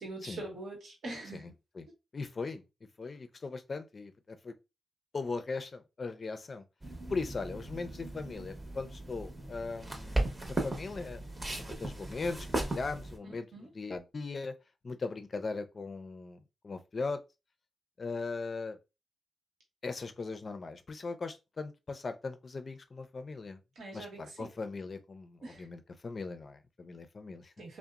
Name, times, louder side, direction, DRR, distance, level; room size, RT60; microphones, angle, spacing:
voice 1, 0.0-1.5 13.5-13.7 23.8-24.5 25.4-25.7 27.6-27.8, right 2 dB, 75° right, 1.0 m, -43 dB
voice 2, 1.3-1.9 2.1-2.6 3.0-4.5 5.1-6.6 7.1-10.3 10.6-11.3 11.5-14.5 14.8-17.2 18.0-18.8 19.8-23.6 23.9-27.5, left 4 dB, 50° left, 0.4 m, -39 dB
sound 1, 6.8-13.2, right 1 dB, 30° right, 0.8 m, -37 dB
2.8 x 2.0 x 2.4 m
cardioid pair, 50°, 0 cm